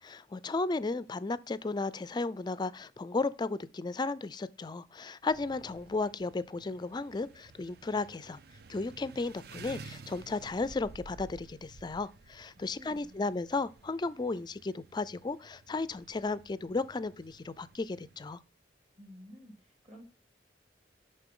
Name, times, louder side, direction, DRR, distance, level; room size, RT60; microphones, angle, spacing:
voice 1, 0.0-8.4 8.7-18.4, left 3 dB, 25° left, 0.4 m, -34 dB
sound 1, 5.3-18.4, right 3 dB, 60° right, 0.5 m, -53 dB
voice 2, 12.5-13.3 19.0-20.0, equal, 35° right, 2.5 m, -53 dB
11.0 x 3.8 x 3.7 m
head